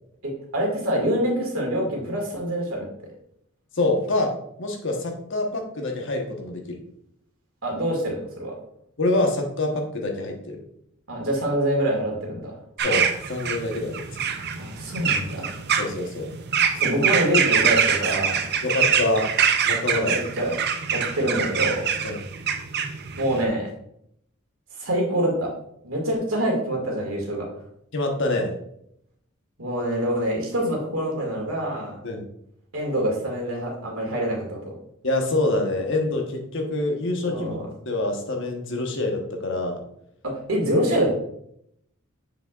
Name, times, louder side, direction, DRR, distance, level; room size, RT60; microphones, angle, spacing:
voice 1, 0.5-2.9 7.6-8.5 11.1-12.5 14.6-15.5 16.7-18.5 19.9-20.5 20.9-21.9 23.2-23.7 24.8-25.5 25.8-27.5 29.6-31.9 32.7-34.6 37.2-37.6 40.2-41.2, equal, 80° right, -1 dB, 2.1 m, -25 dB
voice 2, 3.7-4.3 4.6-6.8 9.0-10.6 12.8-14.1 15.8-16.3 18.6-19.3 19.6-20.1 22.0-22.2 27.9-28.5 32.0-32.2 35.0-37.6 37.9-39.8, left 2 dB, 60° left, 2 dB, 1.1 m, -26 dB
sound 1, 12.8-23.4, right 7 dB, 50° right, 0.6 m, -24 dB
6.9 x 5.9 x 2.4 m, 0.73 s
head